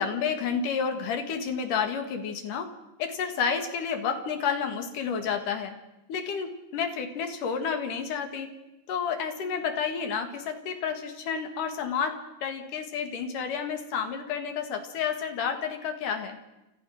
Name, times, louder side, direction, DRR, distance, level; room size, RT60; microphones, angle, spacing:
voice 1, 0.0-2.7 3.0-5.7 6.1-8.5 8.9-16.4, left 6 dB, 75° left, 7 dB, 3.3 m, -30 dB
29.5 x 14.0 x 6.3 m, 0.96 s
omnidirectional pair, 3.7 m